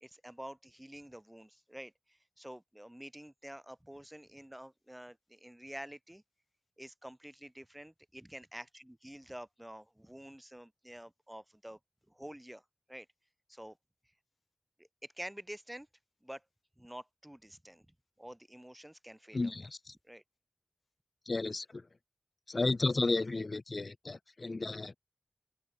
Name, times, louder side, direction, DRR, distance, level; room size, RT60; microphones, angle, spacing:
voice 1, 0.0-6.2 6.8-11.8 12.1-12.6 12.9-13.1 13.5-13.8 14.8-15.9 16.2-16.4 16.8-17.9 18.2-19.5 20.0-20.2, equal, 10° right, 1.4 m, -48 dB
voice 2, 19.3-19.9 21.3-21.9 22.5-25.0, left 3 dB, 70° left, 0.3 m, -33 dB
open air
wide cardioid pair, 60°, 0 cm